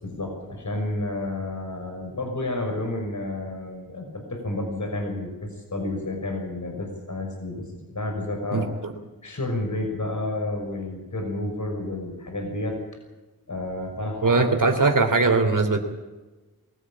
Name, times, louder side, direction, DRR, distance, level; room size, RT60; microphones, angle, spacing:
voice 1, 0.0-8.7 9.2-12.8 13.5-14.4, left 2 dB, 55° left, 3 dB, 6.0 m, -30 dB
voice 2, 8.5-8.9 14.2-15.8, right 3 dB, 60° right, 5 dB, 3.2 m, -20 dB
23.0 x 15.5 x 8.7 m, 1.2 s
wide cardioid pair, 55°, 36 cm